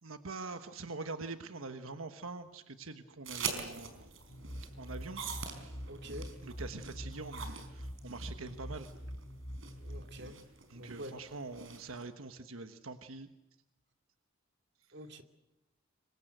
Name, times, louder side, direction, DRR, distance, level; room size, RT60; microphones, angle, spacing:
voice 1, 0.0-4.1 4.8-5.2 6.4-8.9 10.7-13.3 14.8-15.1, right 3 dB, 90° right, 8 dB, 1.3 m, -44 dB
sound 1, 3.3-12.0, right 6 dB, 75° right, 4.7 m, -44 dB
sound 2, 4.3-10.3, equal, 45° left, 7.8 m, -45 dB
voice 2, 5.9-6.3 9.8-10.4 10.7-11.1 14.9-15.2, equal, 55° right, 6 dB, 2.4 m, -46 dB
26.0 x 24.0 x 8.0 m, 0.90 s
head